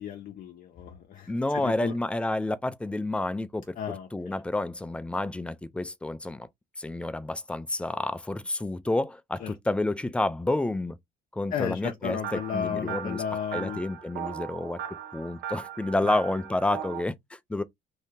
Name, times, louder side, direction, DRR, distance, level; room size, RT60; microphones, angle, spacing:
voice 1, 0.0-1.9 3.8-4.4 9.4-9.5 11.5-13.8 16.0-16.2, left 8 dB, 55° left, 0.6 m, -34 dB
voice 2, 1.3-6.5 6.8-11.0 11.3-13.2 13.5-14.8 15.1-17.6, left 2 dB, 5° left, 0.3 m, -30 dB
sound 1, 12.2-17.0, right 9 dB, 90° right, 0.9 m, -38 dB
2.7 x 2.7 x 3.4 m
cardioid pair, 110°, 17 cm